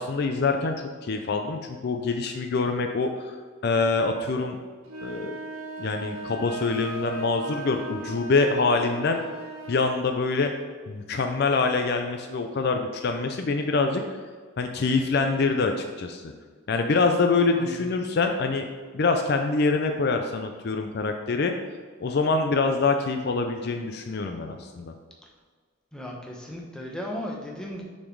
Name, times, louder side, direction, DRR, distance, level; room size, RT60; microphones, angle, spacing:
voice 1, 0.0-3.3 3.6-4.6 5.0-5.3 5.8-9.2 9.7-10.5 10.9-14.0 14.6-16.3 16.7-18.7 18.9-21.5 22.0-24.9, left 3 dB, 50° left, 5 dB, 0.4 m, -25 dB
sound 1, 4.8-9.8, right 2 dB, 90° right, 1.4 m, -37 dB
voice 2, 25.9-27.8, left 1 dB, 5° left, -1 dB, 0.8 m, -36 dB
6.1 x 4.3 x 4.6 m, 1.6 s
head